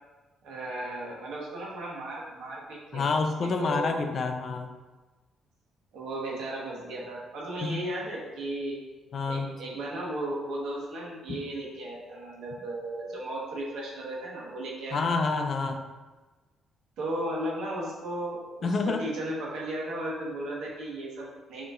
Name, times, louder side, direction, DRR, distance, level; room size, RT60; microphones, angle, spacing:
voice 1, 0.4-4.0 5.9-8.8 9.3-15.2 17.0-21.7, right 1 dB, 80° right, -4 dB, 1.1 m, -35 dB
voice 2, 2.9-4.7 7.6-7.8 9.1-9.5 14.9-15.8 18.6-19.0, left 4 dB, 50° left, 6 dB, 0.4 m, -28 dB
5.3 x 2.9 x 2.4 m, 1.2 s
cardioid pair, 90°, 0 cm